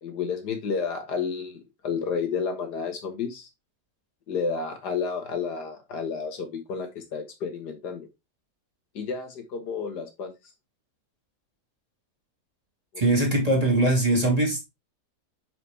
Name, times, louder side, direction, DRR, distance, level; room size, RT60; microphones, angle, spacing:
voice 1, 0.0-3.5 4.3-8.1 9.0-10.3 12.9-13.0, left 5 dB, 85° left, 2.0 m, -31 dB
voice 2, 13.0-14.7, right 1 dB, 25° right, 2.2 m, -21 dB
5.8 x 4.8 x 3.4 m
omnidirectional pair, 1.7 m